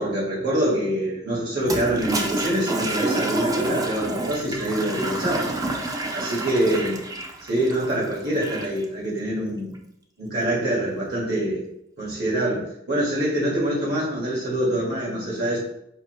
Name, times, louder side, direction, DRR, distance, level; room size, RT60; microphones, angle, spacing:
voice 1, 0.0-5.5 6.1-7.0 7.4-9.8 10.2-11.6 12.0-15.6, right 1 dB, 55° right, -5 dB, 1.6 m, -25 dB
Toilet flush, 1.6-8.8, right 2 dB, 20° right, 0.4 m, -29 dB
5.5 x 2.6 x 3.0 m, 0.81 s
head